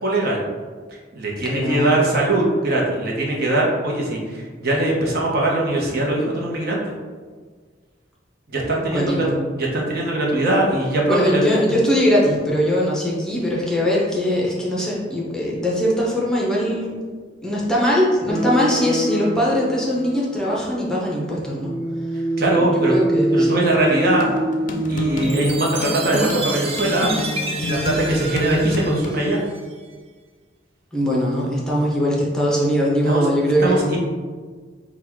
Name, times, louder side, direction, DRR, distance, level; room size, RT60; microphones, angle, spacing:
voice 1, 0.0-0.4 1.1-7.0 8.5-9.2 9.6-11.4 22.4-22.9 23.3-24.3 24.9-27.1 27.6-29.4 33.0-34.0, right 2 dB, 55° right, -3 dB, 0.9 m, -21 dB
voice 2, 1.4-2.0 8.9-9.4 11.1-17.0 17.4-21.7 22.6-23.6 30.9-34.0, equal, 5° left, -5 dB, 0.7 m, -21 dB
sound 1, 18.3-21.0 21.2-28.3, right 1 dB, 15° right, 1.1 m, -26 dB
sound 2, 24.2-29.2, left 2 dB, 45° left, 0.4 m, -28 dB
Chime, 25.2-29.8, right 2 dB, 35° right, 0.4 m, -30 dB
3.9 x 2.3 x 4.5 m, 1.5 s
head